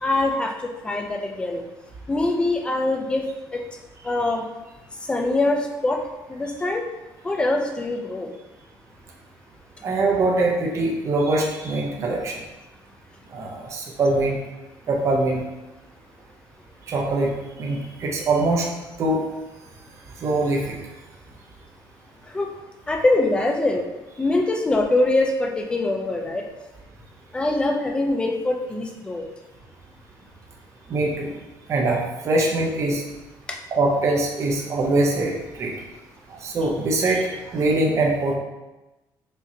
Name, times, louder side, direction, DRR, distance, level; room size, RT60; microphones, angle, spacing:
voice 1, 0.0-1.6 2.1-3.3 3.5-3.6 4.0-4.4 5.0-6.0 6.3-6.9 7.2-8.3 22.3-22.5 22.9-23.8 24.2-26.4 27.3-29.2 33.5-33.6, left 2 dB, 10° left, 2 dB, 0.4 m, -23 dB
voice 2, 9.8-12.4 13.3-14.4 14.9-15.4 16.9-17.3 17.6-18.7 19.0-19.2 20.2-20.8 30.9-31.3 31.7-33.0 33.7-35.7 36.3-38.4, right 2 dB, 35° right, -1 dB, 0.6 m, -23 dB
5.0 x 2.7 x 2.7 m, 1.1 s
cardioid pair, 160°, 8 cm